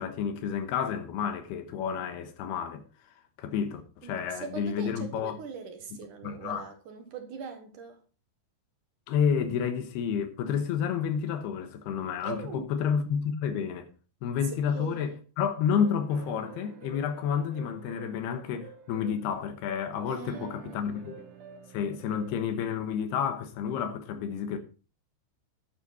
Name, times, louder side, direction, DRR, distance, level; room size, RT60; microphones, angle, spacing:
voice 1, 0.0-2.8 3.4-5.4 6.2-6.6 9.1-13.9 14.2-21.3 21.7-24.6, left 7 dB, 80° left, 3.3 m, -30 dB
voice 2, 4.0-8.0 12.2-12.7 14.6-15.1 20.1-20.9, right 5 dB, 60° right, 2.6 m, -41 dB
sound 1, 15.4-22.4, right 6 dB, 85° right, 1.2 m, -49 dB
11.5 x 9.2 x 4.2 m
omnidirectional pair, 4.6 m